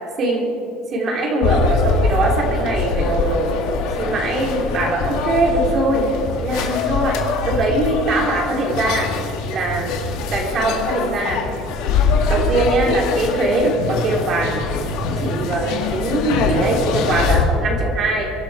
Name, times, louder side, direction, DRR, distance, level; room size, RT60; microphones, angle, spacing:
voice 1, 0.2-0.5 0.9-3.5 4.0-6.1 6.4-9.1 9.5-9.9 10.3-11.4 11.9-12.0 12.2-18.3, right 2 dB, 40° right, 0 dB, 3.2 m, -21 dB
sound 1, 1.4-17.4, left 4 dB, 70° left, 2.1 m, -23 dB
23.5 x 11.5 x 4.8 m, 2.6 s
cardioid pair, 130°, 0 cm